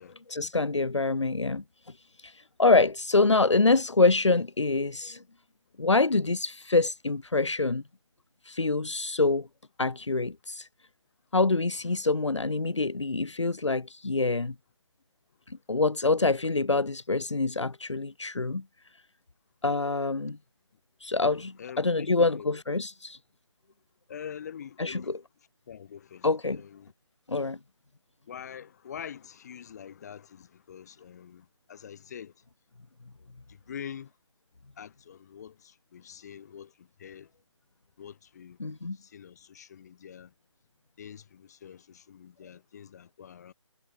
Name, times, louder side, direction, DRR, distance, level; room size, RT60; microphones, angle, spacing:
voice 1, 0.3-1.6 2.2-5.2 5.8-7.8 8.4-9.5 9.8-10.7 11.3-14.5 15.5-18.6 19.6-20.4 21.0-23.2 24.8-25.2 26.2-26.6 27.3-27.6 38.6-39.0, left 3 dB, 70° left, 1.4 m, -26 dB
voice 2, 21.6-22.5 24.1-25.2 25.7-26.9 28.2-32.4 33.2-34.1 34.8-37.3 38.0-38.6 38.9-40.3 41.0-43.5, left 8 dB, 35° left, 4.5 m, -45 dB
figure-of-eight pair, 150°, 16 cm